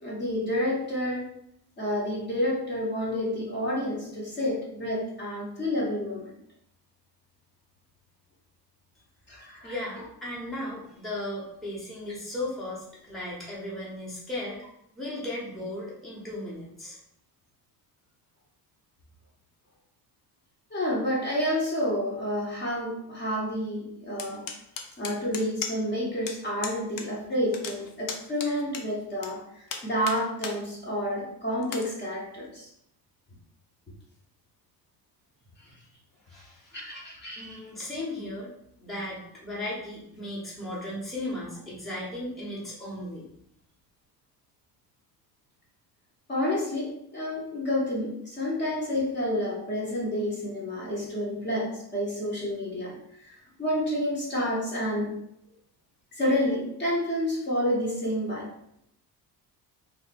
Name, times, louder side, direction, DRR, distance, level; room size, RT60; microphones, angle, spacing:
voice 1, 0.0-1.3 1.8-6.3 9.3-9.7 20.7-24.5 25.0-29.4 29.8-32.7 36.7-37.6 46.3-53.0 53.2-55.1 56.1-58.5, left 1 dB, 30° left, -4 dB, 1.0 m, -29 dB
voice 2, 9.3-14.6 14.9-17.0 36.3-36.8 37.4-38.5 38.8-43.3, left 1 dB, ahead, -7 dB, 0.9 m, -36 dB
sound 1, 24.2-26.0 26.3-26.4 26.6-27.1 27.3-29.3 29.7-30.6 31.0-31.1 31.6-31.9, left 6 dB, 60° left, 0.7 m, -36 dB
3.2 x 2.5 x 4.1 m, 0.73 s
cardioid pair, 140°, 38 cm